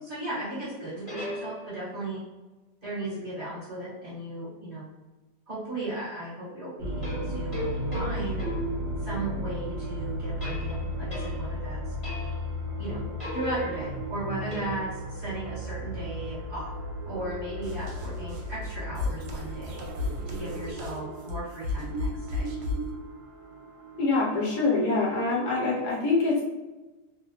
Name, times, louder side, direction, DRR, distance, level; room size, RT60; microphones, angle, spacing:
voice 1, 0.0-2.2 2.8-4.9 5.5-7.6 7.9-8.5 9.0-11.9 12.8-13.0 13.3-16.7 17.0-19.9 20.3-22.5, right 2 dB, 35° right, -10 dB, 1.3 m, -36 dB
sound 1, 0.7-2.0 7.0-9.5 10.4-11.6 12.0-12.6 12.9-15.1, left 1 dB, 25° left, 0.7 m, -38 dB
sound 2, 6.8-25.7, equal, 55° right, 0.8 m, -36 dB
sound 3, 17.6-23.0, left 2 dB, 75° right, 1.1 m, -34 dB
voice 2, 24.0-26.4, left 3 dB, 70° left, -3 dB, 1.1 m, -25 dB
2.7 x 2.0 x 2.8 m, 1.1 s
omnidirectional pair, 1.8 m